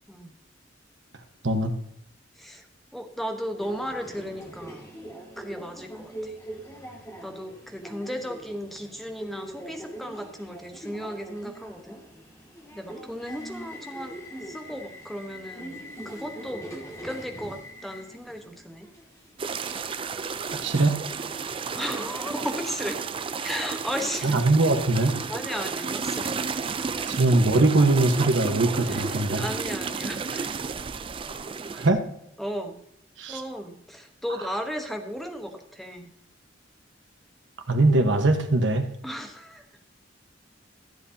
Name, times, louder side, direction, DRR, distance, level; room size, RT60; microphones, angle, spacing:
voice 1, 2.9-4.9 5.4-6.4 7.2-12.0 12.7-14.1 14.4-16.8 17.0-18.9 21.8-23.0 23.4-24.4 25.3-26.4 26.6-27.2 28.9-30.5 32.4-32.8 33.3-36.1 39.0-39.6, equal, ahead, 4 dB, 1.1 m, -35 dB
Subway metro underground, 3.6-19.5, right 1 dB, 15° left, 2.2 m, -42 dB
sound 1, 19.4-31.9, right 5 dB, 30° right, 0.4 m, -32 dB
voice 2, 20.5-21.0 24.2-25.2 27.1-29.4 31.7-32.0 33.2-33.4 37.7-38.9, right 2 dB, 75° right, 6 dB, 1.2 m, -21 dB
14.0 x 7.9 x 2.8 m, 0.74 s
head